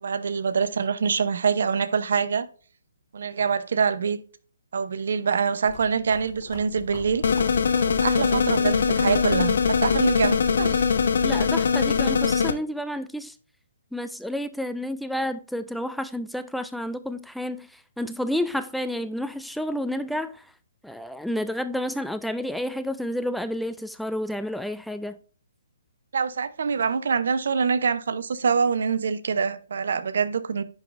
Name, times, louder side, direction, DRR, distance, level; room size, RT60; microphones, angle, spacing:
voice 1, 0.0-2.5 3.1-4.2 4.7-7.2 7.9-10.9 26.1-30.6, right 6 dB, 65° right, 0.8 m, -25 dB
sound 1, 5.7-12.2, left 5 dB, 35° left, 2.7 m, -39 dB
sound 2, 7.2-12.5, left 6 dB, 70° left, 0.9 m, -22 dB
voice 2, 11.2-13.4 13.9-20.5 20.8-25.2, left 1 dB, ahead, 0.3 m, -30 dB
10.5 x 4.8 x 2.5 m
hypercardioid pair, 155°, 0 cm